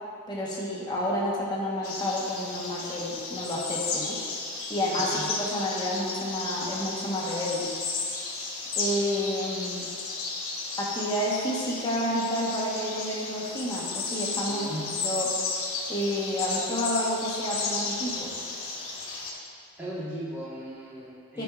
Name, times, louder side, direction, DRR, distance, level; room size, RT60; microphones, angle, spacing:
voice 1, 0.3-4.2 4.7-7.7 8.8-9.9 10.8-14.7 15.0-15.3 15.9-18.3 21.3-21.4, equal, 20° left, -5 dB, 1.1 m, -30 dB
sound 1, 1.8-19.3, left 4 dB, 80° left, 1.2 m, -34 dB
voice 2, 14.5-14.9 19.8-21.4, right 1 dB, 10° right, -8 dB, 1.3 m, -37 dB
11.0 x 5.2 x 2.4 m, 2.3 s
head